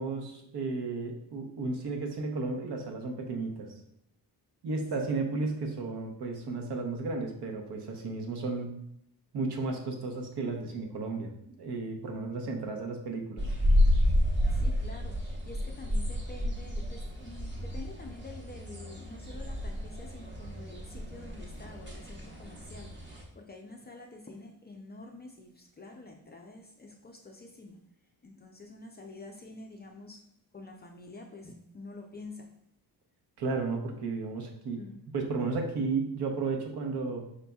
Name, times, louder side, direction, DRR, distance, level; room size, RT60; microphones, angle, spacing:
voice 1, 0.0-3.7 4.6-8.7 9.3-11.3 11.6-13.4 33.4-34.8 35.1-37.2, right 3 dB, 70° right, 2 dB, 0.9 m, -33 dB
sound 1, 13.4-23.2, left 1 dB, 25° right, 0.9 m, -30 dB
voice 2, 14.5-27.8 28.2-30.2 30.5-32.5 34.8-35.0, left 2 dB, 25° left, 1 dB, 0.4 m, -48 dB
5.2 x 4.1 x 2.3 m, 0.74 s
wide cardioid pair, 165°, 41 cm